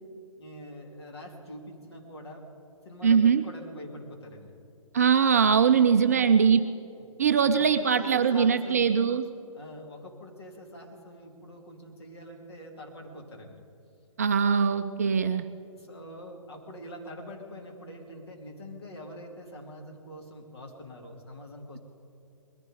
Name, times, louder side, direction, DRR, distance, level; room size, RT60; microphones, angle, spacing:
voice 1, 0.4-2.5 2.8-4.5 5.7-6.3 7.5-9.0 9.5-13.6 15.7-21.8, left 1 dB, 50° left, 1 dB, 2.7 m, -44 dB
voice 2, 3.0-3.4 4.9-6.7 7.2-9.2 14.2-15.4, right 6 dB, 30° right, 9 dB, 0.4 m, -22 dB
21.0 x 15.0 x 4.0 m, 2.8 s
figure-of-eight pair, 135°, 17 cm